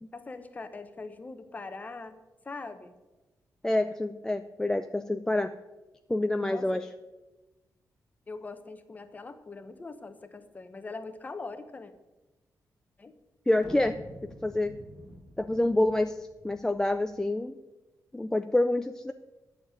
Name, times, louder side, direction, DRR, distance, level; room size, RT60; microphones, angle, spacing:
voice 1, 0.1-2.1 2.4-2.9 6.5-6.7 8.3-11.9 13.0-13.1, left 3 dB, 25° left, 10 dB, 0.9 m, -42 dB
voice 2, 3.6-5.5 6.1-6.9 13.5-14.0 14.4-14.7 15.4-16.2 16.4-17.6 18.1-19.1, left 1 dB, 10° left, 8 dB, 0.4 m, -27 dB
sound 1, 13.6-17.2, equal, 10° right, 1.8 m, -48 dB
10.5 x 6.8 x 8.9 m, 1.1 s
wide cardioid pair, 175°, 6 cm